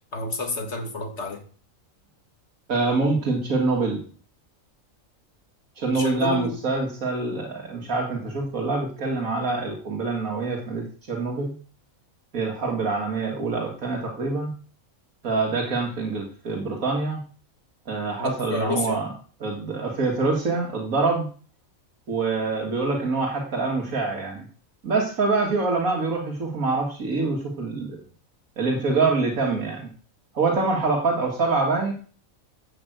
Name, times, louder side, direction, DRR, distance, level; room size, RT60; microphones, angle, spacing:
voice 1, 0.1-1.4 5.9-6.6 18.2-19.0, left 2 dB, 55° left, 2.2 m, -30 dB
voice 2, 2.7-4.0 5.8-11.5 12.3-14.5 15.2-17.2 17.9-19.1 19.4-21.3 22.1-24.5 24.8-28.0 28.6-29.9 30.3-31.9, right 3 dB, 85° right, 2.2 m, -25 dB
11.0 x 6.0 x 7.8 m
omnidirectional pair, 1.4 m